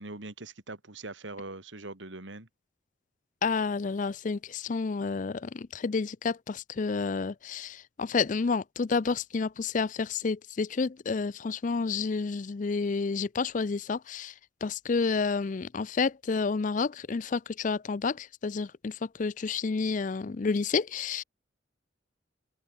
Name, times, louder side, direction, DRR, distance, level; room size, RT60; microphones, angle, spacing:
voice 1, 0.0-2.5, right 2 dB, 80° right, 2.6 m, -42 dB
voice 2, 3.4-14.3 14.6-21.2, left 4 dB, 40° left, 0.4 m, -30 dB
open air
head